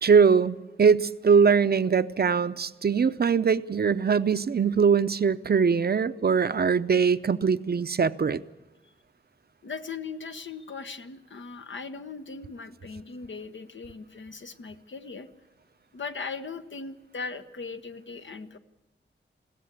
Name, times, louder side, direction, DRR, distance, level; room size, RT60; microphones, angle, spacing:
voice 1, 0.0-8.4, right 6 dB, 55° right, 13 dB, 0.7 m, -22 dB
voice 2, 9.6-15.3 15.9-18.6, left 4 dB, 75° left, 8 dB, 1.1 m, -39 dB
21.5 x 16.5 x 8.2 m, 1.1 s
wide cardioid pair, 105°, 20 cm